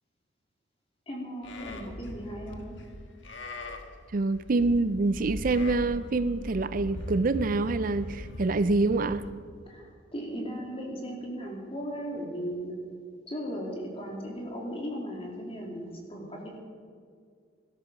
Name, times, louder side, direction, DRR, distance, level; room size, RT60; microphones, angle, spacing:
voice 1, 1.1-2.8 9.7-12.7 13.3-16.6, equal, 30° left, -1 dB, 2.7 m, -37 dB
Livestock farm animals working animals, 1.4-9.3, left 1 dB, 75° left, 1.4 m, -40 dB
voice 2, 4.1-9.3, right 3 dB, 45° right, 14 dB, 0.5 m, -26 dB
17.5 x 12.5 x 5.3 m, 2.1 s
head